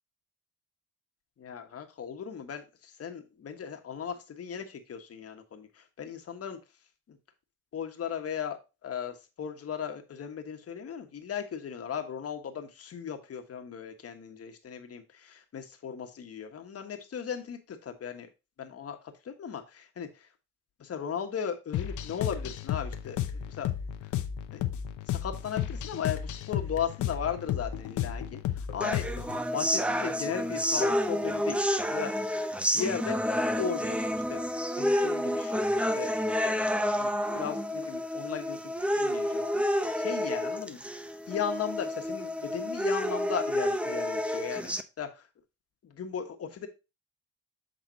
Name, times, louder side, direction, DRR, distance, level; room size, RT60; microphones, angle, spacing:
voice 1, 1.4-6.6 7.1-7.2 7.7-18.3 18.6-20.3 20.8-23.7 24.0-24.1 24.5-24.6 25.1-29.2 29.5-32.3 32.7-33.2 33.6-34.4 34.8-36.1 37.0-41.0 41.3-45.3 45.8-46.7, left 7 dB, 50° left, 5 dB, 1.4 m, -37 dB
sound 1, 21.7-29.4, left 10 dB, 80° left, 0.8 m, -33 dB
sound 2, 28.8-44.8, equal, 5° right, 0.7 m, -29 dB
7.8 x 3.9 x 4.0 m, 0.27 s
cardioid pair, 90°, 30 cm